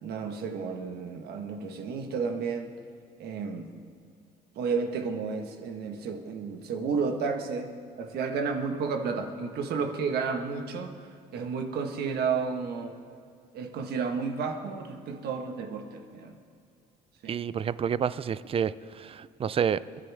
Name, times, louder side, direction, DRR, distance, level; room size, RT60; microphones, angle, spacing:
voice 1, 0.0-2.7 3.2-3.7 4.5-7.7 8.0-10.9 11.3-12.9 13.5-16.4 17.2-17.3, right 5 dB, 70° right, 4 dB, 1.5 m, -32 dB
voice 2, 17.3-20.0, right 7 dB, 35° right, 16 dB, 0.4 m, -29 dB
29.5 x 10.5 x 3.6 m, 2.3 s
cardioid pair, 110°, 17 cm